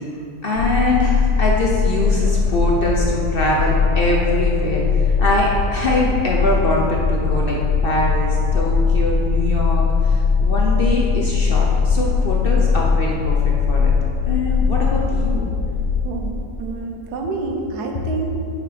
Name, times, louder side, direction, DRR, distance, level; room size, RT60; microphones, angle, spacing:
voice 1, 0.4-7.6 7.8-13.9 14.3-15.4, left 1 dB, 65° left, -2 dB, 0.5 m, -23 dB
sound 1, 0.6-16.1, left 5 dB, 85° left, 1.3 m, -19 dB
voice 2, 16.0-18.3, right 3 dB, 70° right, 2 dB, 1.3 m, -28 dB
6.7 x 5.3 x 4.9 m, 2.6 s
omnidirectional pair, 1.8 m